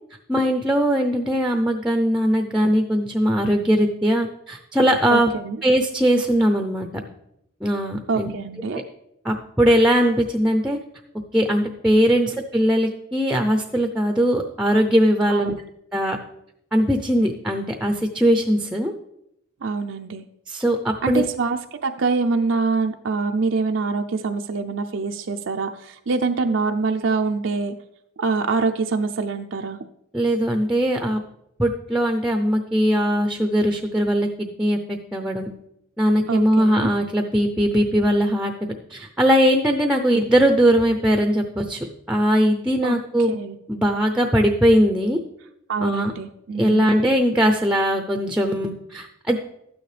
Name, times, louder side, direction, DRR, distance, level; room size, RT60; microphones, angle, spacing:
voice 1, 0.3-5.3 5.6-6.9 7.6-8.3 8.7-8.8 9.2-10.8 11.3-15.6 15.9-16.2 16.7-18.9 20.5-21.3 30.1-31.2 31.6-35.5 36.0-43.3 43.7-45.2 45.8-46.1 46.6-49.4, equal, 5° right, 4 dB, 0.5 m, -20 dB
voice 2, 5.1-5.6 8.1-8.8 15.3-15.6 19.6-20.3 21.0-27.7 28.2-29.8 36.3-36.9 42.8-43.0 43.3-43.6 45.7-46.9, right 4 dB, 70° right, 4 dB, 0.5 m, -25 dB
12.5 x 9.3 x 3.3 m, 0.78 s
head